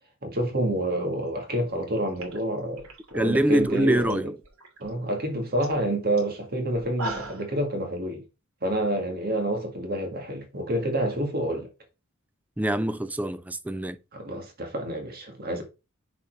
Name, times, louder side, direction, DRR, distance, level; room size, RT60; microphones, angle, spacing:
voice 1, 0.2-4.3 4.8-8.2 8.6-11.7 14.1-15.6, right 1 dB, 45° right, 1.8 m, -28 dB
sound 1, 1.7-1.8 2.1-4.1 4.4-4.9 5.3-5.4 5.6-5.8 6.2-6.3 6.7-7.5, right 2 dB, 85° right, 2.6 m, -39 dB
voice 2, 3.1-4.3 12.6-14.0, right 1 dB, 5° right, 0.4 m, -24 dB
6.5 x 4.2 x 4.5 m
head